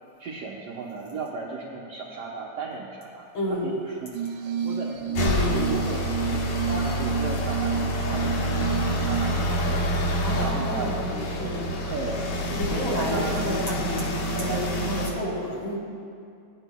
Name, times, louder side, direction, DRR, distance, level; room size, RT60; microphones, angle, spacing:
voice 1, 0.2-3.3 3.6-5.0 5.7-9.8 10.4-12.6 13.0-13.5 14.3-14.9, right 4 dB, 65° right, -4 dB, 1.6 m, -36 dB
voice 2, 3.3-3.7 5.2-5.9 10.2-11.6 12.5-15.8, equal, 40° left, -7 dB, 3.3 m, -30 dB
Glass, 4.1-9.3, right 6 dB, 85° right, 3.2 m, -30 dB
sound 1, 4.9-13.9, left 3 dB, 65° left, 1.2 m, -40 dB
sound 2, 5.1-15.1, equal, 80° left, 2.9 m, -27 dB
18.0 x 11.0 x 2.2 m, 2.4 s
omnidirectional pair, 3.7 m